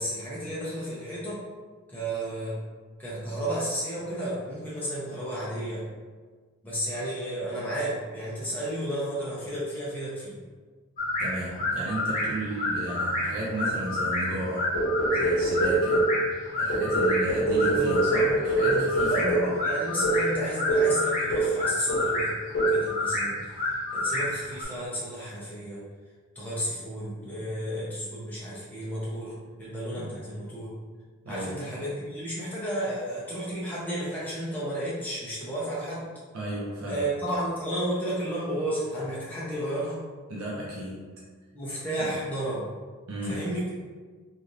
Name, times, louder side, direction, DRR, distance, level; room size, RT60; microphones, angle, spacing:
voice 1, 0.0-1.4 1.9-2.6 3.0-5.8 6.6-10.4 17.7-18.0 19.1-22.4 22.7-25.8 26.3-29.3 29.6-30.7 31.3-36.0 36.9-40.0 41.5-42.7 43.2-43.7, right 1 dB, 10° left, -9 dB, 0.7 m, -32 dB
sound 1, 11.0-24.6, left 2 dB, 35° left, 0.6 m, -29 dB
voice 2, 11.2-14.7 15.1-16.0 16.6-19.4 29.9-30.1 31.2-31.6 36.3-37.1 40.3-41.1 42.0-42.1 43.1-43.5, right 1 dB, 70° right, -5 dB, 0.6 m, -34 dB
sound 2, 14.7-16.2 16.7-19.5 20.0-20.2 20.7-21.0 21.3-21.6 21.9-22.2 22.5-22.8, right 2 dB, 75° left, 0.9 m, -24 dB
3.2 x 2.6 x 2.6 m, 1.4 s
head